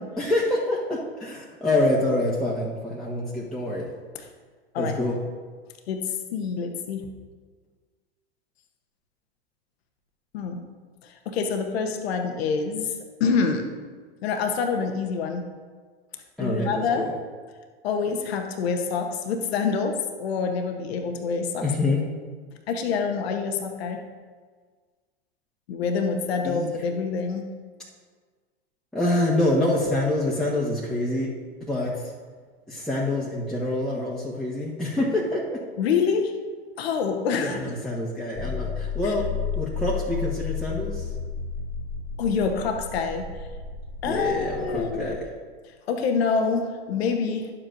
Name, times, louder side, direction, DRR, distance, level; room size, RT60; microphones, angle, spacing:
voice 1, 0.2-3.9 4.8-5.2 16.4-17.1 21.6-22.0 26.4-26.7 28.9-31.3 31.7-32.1 32.7-35.6 37.4-39.3 39.5-41.1 44.1-45.3, left 1 dB, ahead, -7 dB, 1.2 m, -26 dB
voice 2, 6.3-7.0 10.3-10.6 11.0-12.9 13.2-13.7 14.2-15.4 16.4-17.1 17.8-22.0 22.7-24.0 25.7-27.5 35.8-36.3 36.8-37.6 39.0-39.1 42.2-43.2 44.0-45.1 45.9-47.5, left 5 dB, 75° left, 4 dB, 1.0 m, -26 dB
sound 1, 38.4-45.2, left 6 dB, 30° left, 1.5 m, -32 dB
11.0 x 7.6 x 2.6 m, 1.5 s
hypercardioid pair, 105°, 31 cm